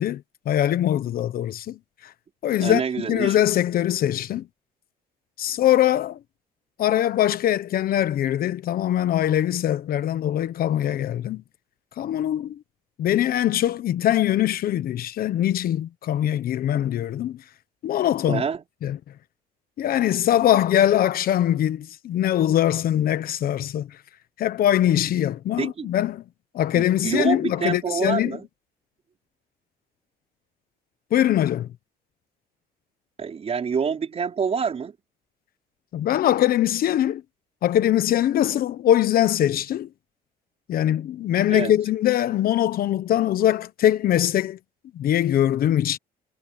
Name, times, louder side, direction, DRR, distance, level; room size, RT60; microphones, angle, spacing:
voice 1, 0.0-1.8 2.0-2.1 2.4-2.8 3.1-4.5 5.4-6.2 6.8-11.4 12.0-12.6 13.0-17.4 17.8-18.4 18.8-19.0 19.8-23.9 24.4-26.2 26.5-28.4 31.1-31.7 35.9-37.2 37.6-39.9 40.7-44.6 44.9-46.0, left 11 dB, 60° left, 1.2 m, -22 dB
voice 2, 2.6-3.4 18.3-18.6 25.6-25.9 26.7-28.4 33.2-34.9 41.5-41.7, right 6 dB, 35° right, 5.2 m, -26 dB
cardioid pair, 110°, 17 cm